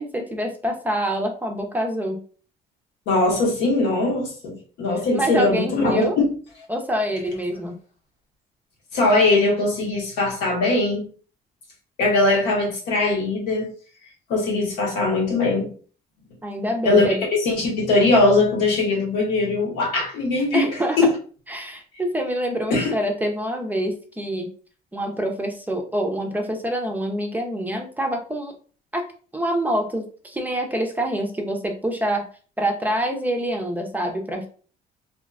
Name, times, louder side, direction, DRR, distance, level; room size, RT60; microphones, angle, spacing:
voice 1, 0.0-2.2 5.1-6.2 6.7-7.8 16.4-17.2 20.5-21.1 21.5-24.5 24.9-28.5 28.9-29.1 29.3-32.3 32.6-34.5, right 1 dB, 10° right, 0.4 m, -26 dB
voice 2, 3.1-6.3 8.9-11.0 12.0-13.7 14.3-15.7 16.8-17.1 17.4-20.7 21.0-21.1 22.7-22.9, left 2 dB, 85° left, 1.0 m, -20 dB
2.7 x 2.2 x 2.3 m
cardioid pair, 110°, 17 cm